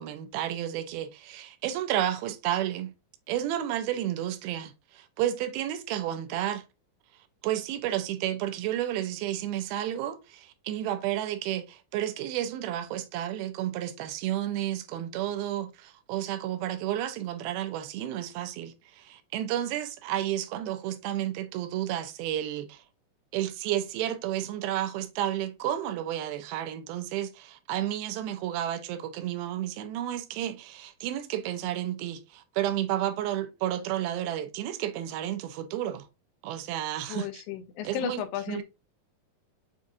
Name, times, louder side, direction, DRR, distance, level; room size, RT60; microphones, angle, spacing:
voice 1, 0.0-2.9 3.3-6.6 7.4-22.8 23.3-36.1 36.4-37.3 37.8-38.2 38.5-38.6, right 12 dB, 90° right, 2.5 m, -31 dB
voice 2, 37.1-38.6, left 10 dB, 80° left, 2.4 m, -34 dB
7.3 x 2.7 x 2.6 m
omnidirectional pair, 4.3 m